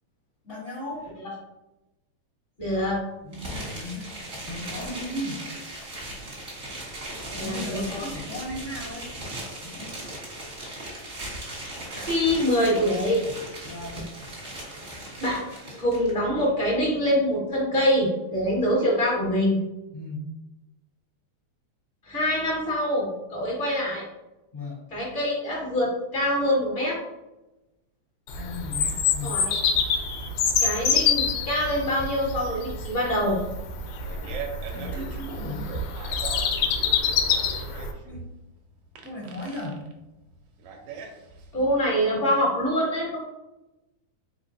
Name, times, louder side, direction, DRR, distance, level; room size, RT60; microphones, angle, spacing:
voice 1, 0.4-1.1 2.6-2.7 3.2-5.4 7.3-9.1 9.6-9.9 13.6-14.0 19.9-20.2 24.5-24.8 28.3-29.4 34.7-35.7 38.0-38.2 39.0-39.8 42.1-42.2, left 1 dB, 50° left, -11 dB, 0.8 m, -36 dB
voice 2, 2.6-3.0 7.4-8.0 11.9-13.2 15.2-19.6 22.1-24.0 24.9-27.0 29.2-29.5 30.6-33.4 41.5-43.2, equal, 30° left, -5 dB, 1.0 m, -25 dB
sound 1, 3.3-16.1, right 1 dB, 50° right, 0.9 m, -38 dB
Bird vocalization bird call bird song, 28.3-37.9, left 6 dB, 75° left, 1.7 m, -26 dB
Fart, 33.8-41.7, right 5 dB, 80° right, 1.4 m, -41 dB
4.4 x 4.0 x 2.6 m, 1.0 s
omnidirectional pair, 3.5 m